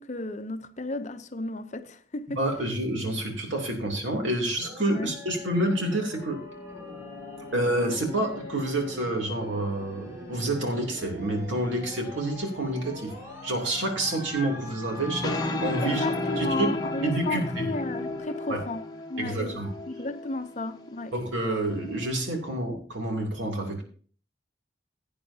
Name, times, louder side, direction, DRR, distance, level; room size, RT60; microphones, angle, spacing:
voice 1, 0.0-2.4 4.9-5.1 15.8-19.6 19.9-21.1, left 2 dB, 40° left, 0.7 m, -33 dB
voice 2, 2.3-6.4 7.5-13.1 13.4-15.3 15.6-16.1 16.4-16.7 17.0-17.6 18.5-18.6 19.2-19.7 21.1-23.8, right 1 dB, 85° right, 2.9 m, -28 dB
sound 1, 4.6-18.2, left 1 dB, 10° right, 6.1 m, -39 dB
sound 2, 15.0-22.1, left 2 dB, 20° left, 1.0 m, -34 dB
16.5 x 8.8 x 2.8 m
head